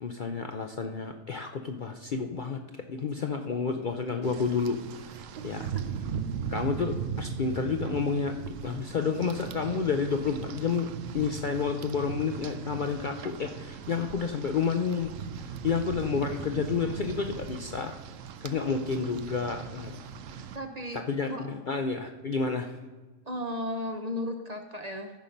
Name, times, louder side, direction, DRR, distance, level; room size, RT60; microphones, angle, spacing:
voice 1, 0.0-2.6 2.9-5.7 6.5-15.1 15.4-18.0 18.4-20.0 20.3-20.4 20.9-22.8, left 5 dB, 50° left, 5 dB, 0.6 m, -30 dB
Rain, 4.2-20.6, right 7 dB, 75° right, 1.0 m, -39 dB
voice 2, 5.4-5.7 18.7-19.3 20.5-21.0 21.3-21.5 23.3-25.1, left 1 dB, 35° right, 5 dB, 0.7 m, -35 dB
14.0 x 5.7 x 5.2 m, 1.3 s
omnidirectional pair, 1.4 m